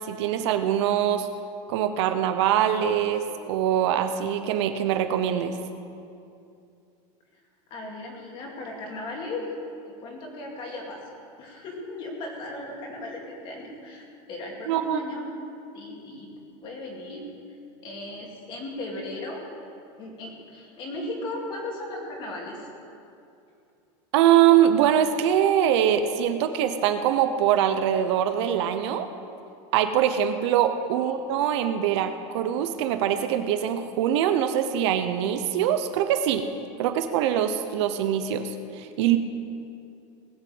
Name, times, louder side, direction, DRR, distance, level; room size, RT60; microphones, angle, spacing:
voice 1, 0.1-1.3 1.7-5.6 14.7-15.0 24.1-29.1 29.7-36.4 36.8-38.4 38.8-39.2, right 10 dB, 60° right, 8 dB, 0.8 m, -23 dB
voice 2, 7.7-9.5 10.0-11.0 11.4-15.3 15.7-16.3 16.6-17.2 17.8-19.4 20.0-22.7 31.0-31.1, left 2 dB, 30° left, -1 dB, 2.4 m, -36 dB
19.0 x 6.4 x 7.8 m, 2.6 s
supercardioid pair, 175°, 17 cm